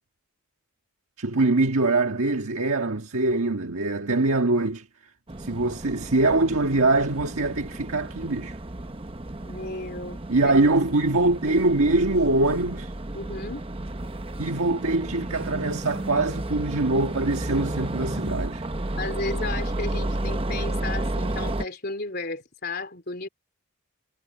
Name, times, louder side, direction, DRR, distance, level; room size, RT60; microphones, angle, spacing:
voice 1, 1.2-4.9 5.4-8.6 10.3-12.9 14.4-18.7, right 2 dB, 80° right, 1.5 m, -23 dB
Bus passing by, 5.3-21.6, right 1 dB, 25° right, 0.9 m, -32 dB
voice 2, 9.5-10.2 10.4-10.5 13.1-13.6 19.0-23.3, left 3 dB, 45° left, 3.6 m, -33 dB
head